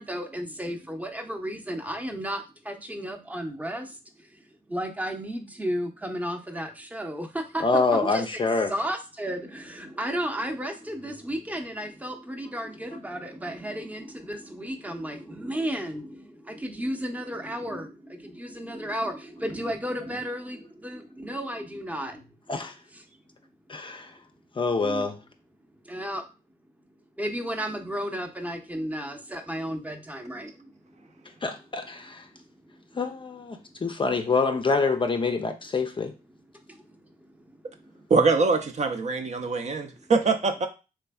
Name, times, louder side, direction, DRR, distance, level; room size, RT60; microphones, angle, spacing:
voice 1, 0.0-4.3 4.7-8.4 8.7-22.3 22.9-23.0 24.8-25.1 25.8-26.2 27.2-30.7 31.2-31.3 36.7-36.8 37.8-37.9, equal, 10° right, 0.7 m, -33 dB
voice 2, 7.6-8.7 22.5-22.7 23.7-24.1 24.6-25.2 31.4-32.2 33.0-36.1, left 4 dB, 30° left, 0.5 m, -26 dB
voice 3, 38.1-40.7, right 4 dB, 45° right, 0.5 m, -23 dB
3.4 x 3.2 x 2.2 m
supercardioid pair, 55°, 17 cm